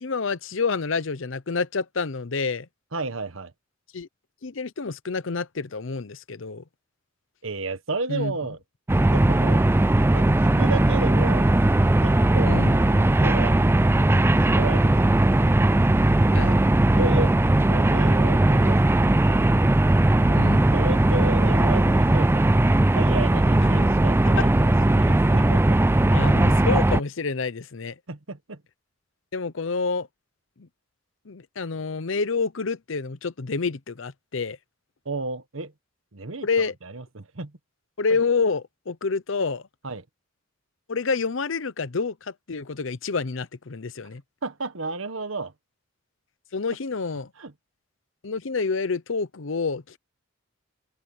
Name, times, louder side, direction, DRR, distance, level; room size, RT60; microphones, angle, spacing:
voice 1, 0.0-2.7 3.9-4.1 4.4-6.6 8.1-8.3 12.4-12.8 16.3-16.6 20.3-20.7 24.4-24.5 26.0-28.0 29.3-30.1 31.3-34.6 36.4-36.7 38.0-39.6 40.9-44.2 46.5-47.3 48.2-50.0, left 4 dB, 70° left, 0.8 m, -28 dB
voice 2, 2.9-3.5 7.4-8.6 9.1-9.7 10.1-11.5 12.0-13.6 14.5-15.5 16.9-17.3 17.7-19.6 20.3-20.4 20.7-22.5 22.9-25.8 28.1-28.6 35.0-35.7 36.1-36.5 36.8-37.5 39.8-40.0 44.4-45.5 47.4-47.5, right 3 dB, 80° right, 1.5 m, -32 dB
sound 1, 8.9-27.0, right 1 dB, 10° right, 0.4 m, -19 dB
open air
head